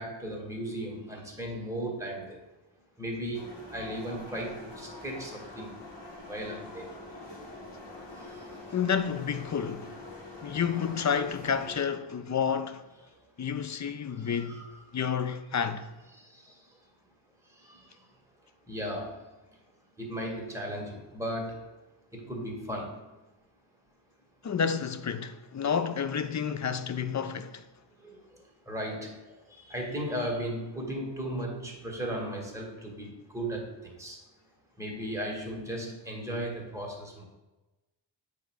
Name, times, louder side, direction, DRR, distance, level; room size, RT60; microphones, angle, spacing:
voice 1, 0.0-2.4 3.0-5.8 6.3-6.9 8.2-8.4 14.2-14.6 16.1-16.5 17.6-17.8 18.7-19.2 20.0-21.7 22.1-23.0 28.0-28.2 28.7-29.1 29.6-34.2 34.8-37.2, right 1 dB, 5° right, 2.0 m, -36 dB
sound 1, 3.3-11.8, left 2 dB, 65° left, 2.1 m, -45 dB
voice 2, 8.7-10.0 10.4-12.8 13.4-14.7 14.9-15.9 24.4-27.7, left 7 dB, 40° left, 0.5 m, -30 dB
7.9 x 3.5 x 6.3 m
cardioid pair, 85°, 46 cm